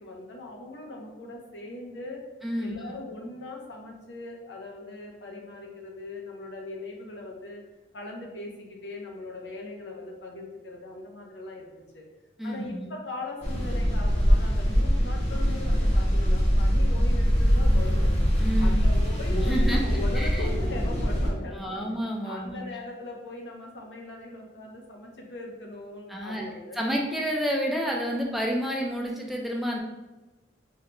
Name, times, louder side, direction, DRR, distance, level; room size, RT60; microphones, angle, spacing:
voice 1, 0.0-2.2 2.6-7.6 7.9-12.0 12.4-18.1 18.6-21.8 22.2-26.8, left 2 dB, 80° left, 0 dB, 0.6 m, -39 dB
voice 2, 2.4-2.7 12.4-12.9 18.4-19.0 19.3-19.8 20.2-20.5 21.5-22.6 26.1-26.4 26.8-29.8, equal, ahead, -1 dB, 0.4 m, -30 dB
sound 1, 13.4-21.3, equal, 40° left, 0.8 m, -23 dB
3.6 x 2.2 x 2.9 m, 1.1 s
head